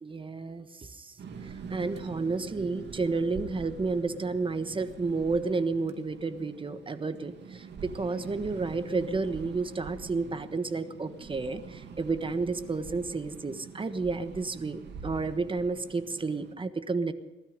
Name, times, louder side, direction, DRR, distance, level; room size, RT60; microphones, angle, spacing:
voice 1, 0.0-17.1, right 3 dB, 25° right, 11 dB, 1.3 m, -31 dB
sound 1, 1.2-16.5, right 5 dB, 60° right, 2.2 m, -44 dB
19.0 x 13.0 x 5.3 m, 1.2 s
cardioid pair, 90°, 20 cm